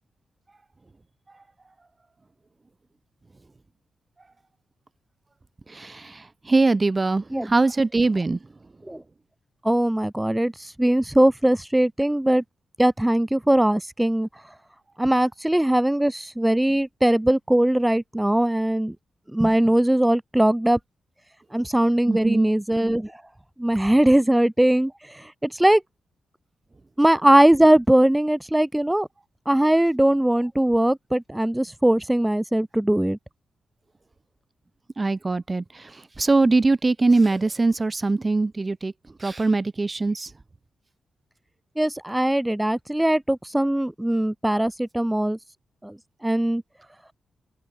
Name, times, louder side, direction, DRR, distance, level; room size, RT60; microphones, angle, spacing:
voice 1, 5.7-6.2 6.5-8.4 22.1-22.5 35.0-35.6 36.2-38.9 39.2-40.3, right 3 dB, 30° right, 3.6 m, -22 dB
voice 2, 9.6-12.4 12.8-14.3 15.0-19.0 19.3-20.8 21.5-23.2 23.6-25.8 27.0-29.1 29.5-33.2 41.8-45.4 45.8-46.0 46.2-46.6, right 1 dB, 10° right, 3.5 m, -20 dB
open air
cardioid pair, 70°, 0 cm